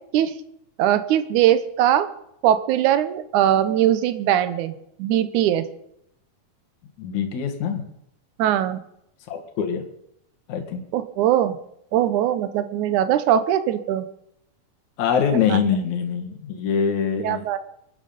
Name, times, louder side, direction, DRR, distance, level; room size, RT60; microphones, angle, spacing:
voice 1, 0.8-2.1 2.4-4.7 5.0-5.6 8.4-8.8 10.9-11.6 11.9-14.1 15.5-15.6 17.2-17.6, right 11 dB, 70° right, 12 dB, 2.1 m, -20 dB
voice 2, 7.0-7.8 9.3-9.9 10.5-10.8 15.0-17.4, left 7 dB, 60° left, 2 dB, 3.0 m, -24 dB
23.0 x 9.6 x 5.3 m, 0.78 s
omnidirectional pair, 4.0 m